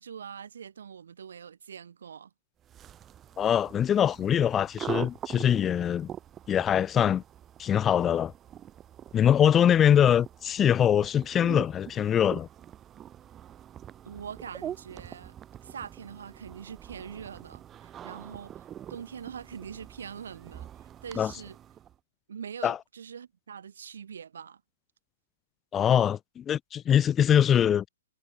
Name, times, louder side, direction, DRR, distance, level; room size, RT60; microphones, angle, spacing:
voice 1, 0.0-2.3 14.0-18.6 18.9-20.7 21.0-21.6 22.3-24.6, right 7 dB, 65° right, 1.8 m, -43 dB
sound 1, 2.6-22.0, right 10 dB, 20° right, 0.9 m, -44 dB
voice 2, 3.4-6.1 6.5-7.2 7.6-8.3 9.1-12.5 21.2-21.3 22.6-22.8 25.7-27.9, left 9 dB, 20° left, 0.3 m, -23 dB
figure-of-eight pair, 120°, 0 cm